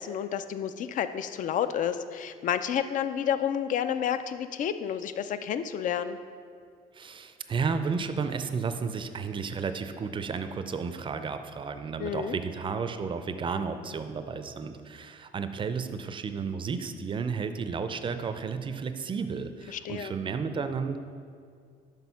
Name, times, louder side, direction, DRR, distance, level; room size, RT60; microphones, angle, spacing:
voice 1, 0.0-6.2 12.0-12.4 19.7-20.1, left 9 dB, 50° left, 12 dB, 0.4 m, -30 dB
voice 2, 6.9-21.0, right 5 dB, 30° right, 9 dB, 0.4 m, -32 dB
6.2 x 5.3 x 5.5 m, 2.2 s
cardioid pair, 110°, 17 cm